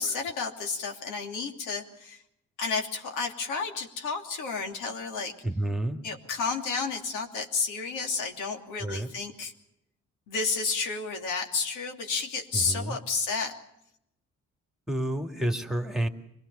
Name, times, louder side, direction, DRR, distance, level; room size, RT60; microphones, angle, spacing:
voice 1, 0.0-2.2 2.6-5.3 6.0-9.5 10.3-13.6, left 4 dB, 90° left, 3 dB, 3.0 m, -31 dB
voice 2, 5.4-6.0 8.8-9.1 12.5-13.0 14.9-16.1, right 1 dB, ahead, 6 dB, 2.3 m, -30 dB
25.0 x 19.5 x 6.9 m, 0.78 s
cardioid pair, 90°, 30 cm